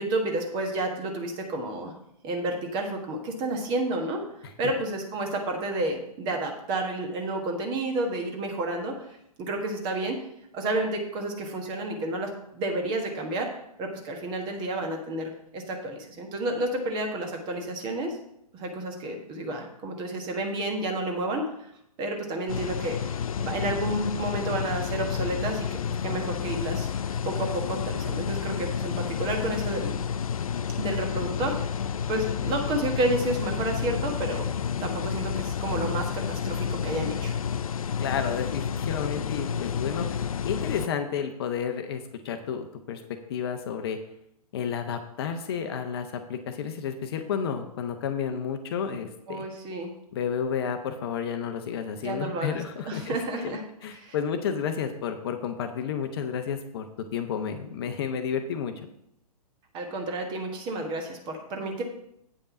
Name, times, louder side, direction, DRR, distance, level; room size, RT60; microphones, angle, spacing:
voice 1, 0.0-1.9 2.2-4.2 4.6-10.2 10.5-13.5 13.8-18.2 18.5-21.5 22.0-30.0 30.8-34.5 34.8-37.4 49.3-49.9 52.0-52.6 52.8-53.6 53.9-54.1 59.7-61.8, right 2 dB, 25° right, 2 dB, 1.4 m, -31 dB
sound 1, 22.5-40.9, left 7 dB, 60° left, 0.4 m, -30 dB
voice 2, 38.0-43.0 43.3-44.0 44.5-49.4 50.1-56.9 57.1-58.7, left 7 dB, 40° left, 7 dB, 0.8 m, -31 dB
8.5 x 5.3 x 5.8 m, 0.78 s
figure-of-eight pair, 115°, 20 cm